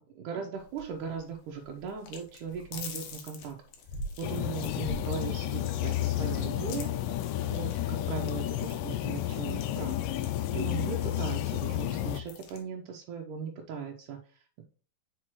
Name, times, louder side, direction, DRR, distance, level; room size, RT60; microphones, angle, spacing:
voice 1, 0.0-3.6 4.2-6.9 7.5-10.0 10.5-14.6, right 6 dB, 80° right, 0 dB, 2.4 m, -38 dB
sound 1, 0.6-12.6, left 2 dB, 70° left, 2.5 m, -46 dB
sound 2, 4.2-12.2, left 13 dB, 90° left, 2.2 m, -31 dB
6.1 x 5.2 x 3.1 m, 0.39 s
omnidirectional pair, 3.8 m